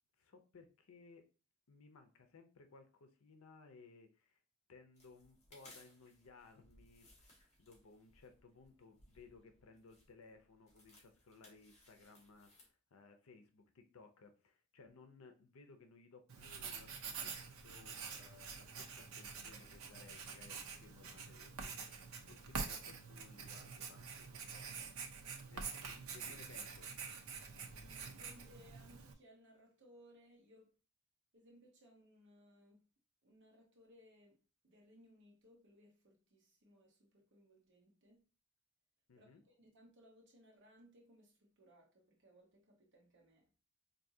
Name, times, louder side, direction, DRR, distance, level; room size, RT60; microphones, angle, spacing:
voice 1, 0.2-1.3 1.7-4.4 4.7-16.9 17.2-24.9 25.5-26.9 39.1-39.4, left 4 dB, 80° left, 0.6 m, -61 dB
sound 1, 4.9-12.7, left 1 dB, 30° left, 1.5 m, -66 dB
Writing, 16.3-29.1, right 5 dB, 75° right, 0.6 m, -47 dB
voice 2, 27.9-30.8 31.3-32.8 33.2-38.3 39.1-43.5, equal, 60° right, 0.9 m, -65 dB
4.6 x 2.7 x 2.6 m
head